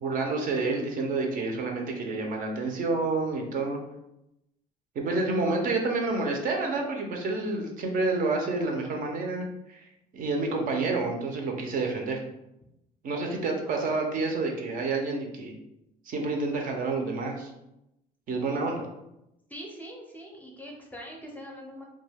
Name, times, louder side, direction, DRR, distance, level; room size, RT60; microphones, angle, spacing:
voice 1, 0.0-3.8 5.0-9.8 10.1-12.2 13.0-15.5 16.1-17.5 18.3-18.9, right 3 dB, 55° right, 2 dB, 0.5 m, -29 dB
voice 2, 19.5-21.8, equal, 10° left, 0 dB, 0.5 m, -43 dB
2.2 x 2.2 x 3.3 m, 0.88 s
cardioid pair, 110°, 17 cm